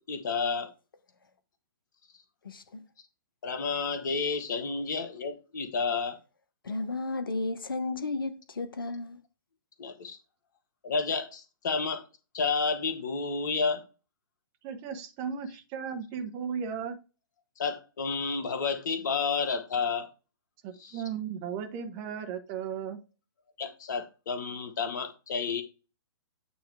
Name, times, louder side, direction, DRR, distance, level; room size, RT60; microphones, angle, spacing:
voice 1, 0.1-0.7 3.4-6.2 9.8-10.2 10.8-12.0 12.3-13.8 17.6-20.1 20.8-21.0 23.6-25.6, left 5 dB, 55° left, 1.5 m, -30 dB
voice 2, 2.4-2.8 6.6-9.2, left 3 dB, 70° left, 0.8 m, -33 dB
voice 3, 14.6-17.0 20.6-23.0, right 7 dB, 30° right, 1.1 m, -36 dB
8.9 x 3.1 x 4.7 m
figure-of-eight pair, 115°, 12 cm